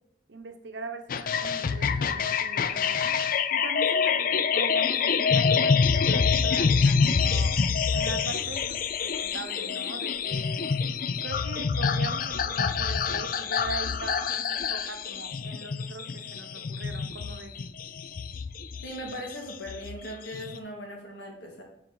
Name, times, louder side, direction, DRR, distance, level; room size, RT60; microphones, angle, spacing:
voice 1, 0.3-10.7 11.2-17.6, right 3 dB, 75° right, 6 dB, 0.9 m, -41 dB
sound 1, 1.1-20.6, left 6 dB, 50° left, 0.4 m, -26 dB
voice 2, 18.8-21.6, equal, 70° left, 0 dB, 2.0 m, -39 dB
9.4 x 4.6 x 3.9 m, 0.80 s
head